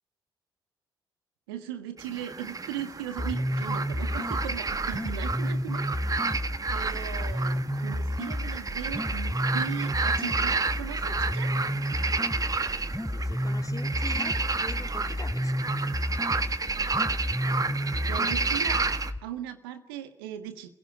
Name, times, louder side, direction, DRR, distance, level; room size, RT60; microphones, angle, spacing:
voice 1, 1.5-5.9 6.7-11.5 18.0-18.9 19.2-20.7, right 11 dB, 80° right, 9 dB, 1.5 m, -38 dB
sound 1, 2.0-19.1, right 4 dB, 30° right, 1.5 m, -31 dB
sound 2, 3.2-19.2, equal, 5° left, 3.0 m, -31 dB
voice 2, 13.1-15.5, left 3 dB, 30° left, 8 dB, 2.4 m, -43 dB
29.5 x 16.5 x 9.8 m, 0.75 s
figure-of-eight pair, 40°, 12 cm